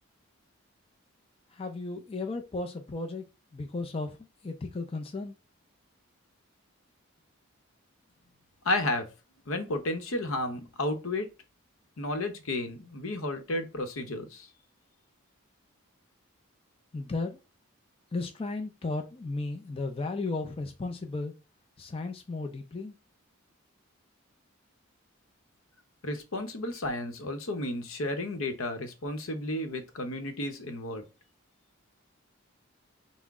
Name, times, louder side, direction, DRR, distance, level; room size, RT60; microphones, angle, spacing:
voice 1, 1.5-3.2 3.5-4.2 4.4-5.4 16.9-17.4 18.1-21.3 21.8-22.9, left 3 dB, 25° left, 0.4 m, -34 dB
voice 2, 8.6-9.1 9.5-11.3 12.0-14.5 26.0-31.0, left 1 dB, 75° left, 0.8 m, -32 dB
5.8 x 2.1 x 3.6 m
head